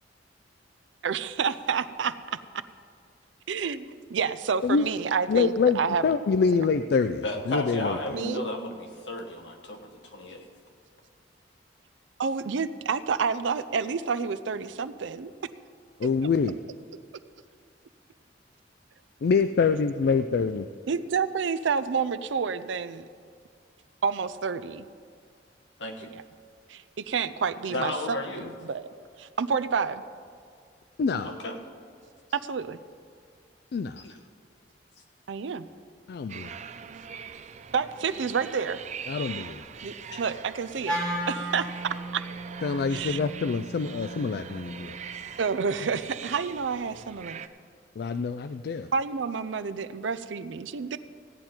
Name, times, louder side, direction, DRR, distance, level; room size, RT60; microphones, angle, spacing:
voice 1, 1.0-2.4 3.5-6.1 8.1-8.4 12.2-15.3 20.9-23.1 24.0-24.9 26.0-26.2 26.7-28.9 29.2-30.0 32.3-32.8 35.3-35.7 37.7-38.8 39.8-41.0 41.3-41.7 42.1-42.2 42.9-43.2 45.4-47.4 48.9-51.0, right 5 dB, 90° right, 0.5 m, -29 dB
voice 2, 5.3-8.0 16.0-16.6 19.2-20.7 31.0-31.4 33.7-34.0 36.1-36.5 39.1-39.6 42.6-45.0 48.0-48.9, left 5 dB, 60° left, 0.3 m, -25 dB
voice 3, 7.2-10.5 25.8-26.1 27.7-28.5 31.2-31.6 34.0-34.1 40.1-40.2, left 1 dB, 75° left, 1.4 m, -33 dB
sound 1, 36.3-47.5, right 7 dB, 40° right, 0.4 m, -43 dB
Wind instrument woodwind instrument, 40.8-45.1, right 1 dB, 5° left, 2.4 m, -35 dB
16.0 x 9.2 x 4.4 m
head